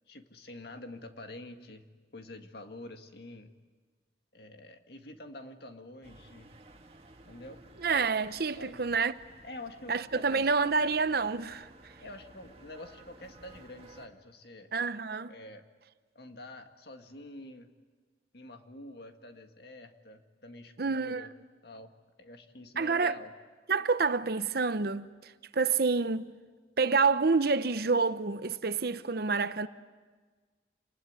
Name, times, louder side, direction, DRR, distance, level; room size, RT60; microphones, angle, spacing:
voice 1, 0.1-1.9 2.1-3.5 4.3-6.5 7.2-7.6 8.6-8.9 9.4-10.5 12.0-14.7 15.3-15.6 16.2-17.7 18.3-21.3 21.6-21.9 22.2-23.3, left 2 dB, 60° left, 1.9 m, -47 dB
sound 1, 6.0-14.1, right 2 dB, 35° right, 1.8 m, -55 dB
voice 2, 7.8-9.1 9.9-11.7 14.7-15.3 20.8-21.3 22.8-23.1 23.7-26.3 26.8-29.7, right 4 dB, 60° right, 0.8 m, -28 dB
28.0 x 20.0 x 9.6 m
head